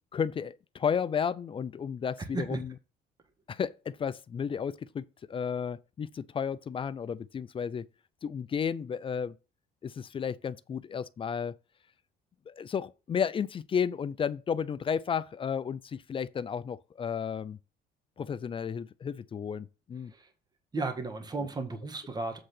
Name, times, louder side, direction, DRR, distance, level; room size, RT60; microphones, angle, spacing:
voice 1, 0.1-2.7 3.5-7.9 8.2-9.4 9.8-11.5 12.5-17.6 18.2-20.1 21.4-21.5, left 7 dB, 30° left, 0.4 m, -33 dB
voice 2, 20.7-22.4, right 3 dB, 25° right, 1.6 m, -34 dB
7.8 x 3.8 x 6.6 m
cardioid pair, 110°, 17 cm